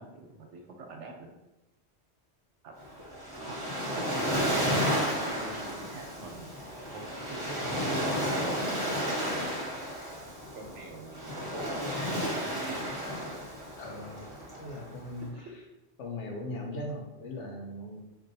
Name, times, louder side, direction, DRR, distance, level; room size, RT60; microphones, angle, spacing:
voice 1, 0.0-1.3 2.6-2.7 3.4-3.6 3.9-6.5 6.9-8.2 8.7-9.6 10.5-11.5 12.1-12.9 15.3-15.5, right 3 dB, 80° right, 2 dB, 1.0 m, -45 dB
Waves surf, 2.8-15.2, equal, 20° right, 1.0 m, -32 dB
voice 2, 13.8-14.2 14.6-15.3 16.0-18.0, left 1 dB, 80° left, 1 dB, 1.0 m, -39 dB
4.6 x 2.5 x 2.6 m, 0.96 s
omnidirectional pair, 1.2 m